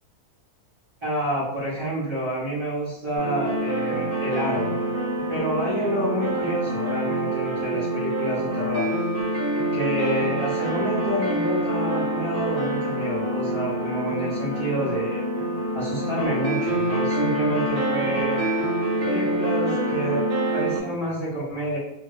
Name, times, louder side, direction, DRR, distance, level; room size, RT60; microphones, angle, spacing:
voice 1, 1.0-4.8 5.3-8.9 9.7-15.2 15.7-18.5 19.0-20.2 20.5-21.8, equal, 25° right, -10 dB, 0.9 m, -28 dB
sound 1, 3.2-20.8, right 1 dB, 50° right, 0.8 m, -26 dB
2.8 x 2.5 x 3.1 m, 0.83 s
omnidirectional pair, 1.6 m